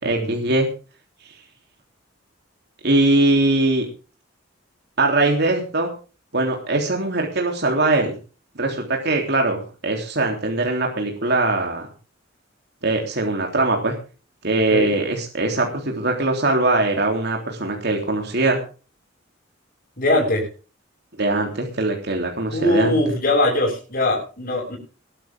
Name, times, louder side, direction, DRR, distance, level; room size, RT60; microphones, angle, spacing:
voice 1, 0.0-0.7 2.8-3.9 5.0-5.9 6.3-8.1 8.5-11.9 12.8-13.9 14.4-18.6 21.2-22.9, right 2 dB, 55° right, 1 dB, 3.4 m, -21 dB
voice 2, 20.0-20.5 22.5-24.8, left 1 dB, 50° left, -2 dB, 6.9 m, -21 dB
21.0 x 12.0 x 3.7 m, 0.36 s
head